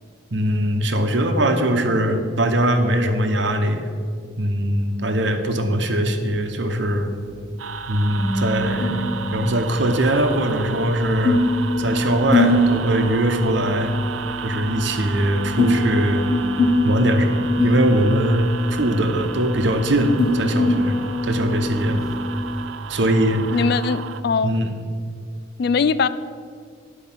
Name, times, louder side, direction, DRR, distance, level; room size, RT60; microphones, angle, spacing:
voice 1, 0.3-3.9 4.4-7.1 7.9-9.0 9.3-11.4 11.8-14.0 14.4-16.3 16.8-21.0 21.2-22.0 22.9-23.6 24.4-24.7, right 1 dB, 65° right, 6 dB, 1.0 m, -21 dB
sound 1, 6.6-22.7, left 1 dB, 20° left, 0.9 m, -24 dB
sound 2, 7.6-24.2, right 6 dB, 80° right, 0.5 m, -34 dB
voice 2, 23.5-24.5 25.6-26.1, left 5 dB, 55° left, 15 dB, 0.3 m, -21 dB
10.5 x 5.0 x 7.4 m, 2.1 s
head